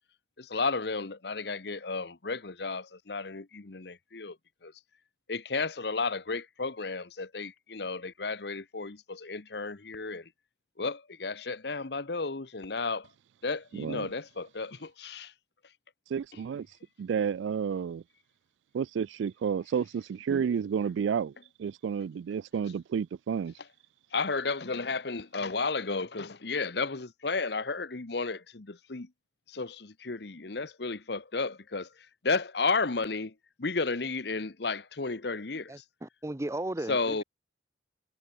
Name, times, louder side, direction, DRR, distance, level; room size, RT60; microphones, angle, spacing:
voice 1, 0.4-4.4 4.6-4.7 5.3-10.3 10.8-13.1 13.4-15.3 24.1-29.1 29.5-35.8 36.9-37.2, left 4 dB, 60° left, 1.0 m, -33 dB
voice 2, 13.7-14.1 16.1-16.7 17.0-18.0 18.7-21.3 21.6-23.5, right 7 dB, 80° right, 0.3 m, -31 dB
voice 3, 35.7-37.2, right 1 dB, 15° right, 0.5 m, -36 dB
head